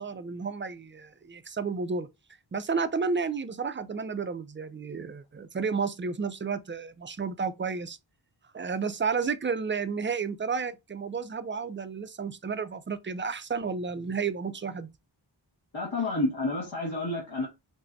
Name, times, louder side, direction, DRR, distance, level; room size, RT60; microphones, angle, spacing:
voice 1, 0.0-2.1 2.5-8.0 8.5-14.9, right 5 dB, 25° right, 0.4 m, -32 dB
voice 2, 15.7-17.5, left 2 dB, 75° left, 1.7 m, -29 dB
5.7 x 2.0 x 2.6 m
wide cardioid pair, 55°, 46 cm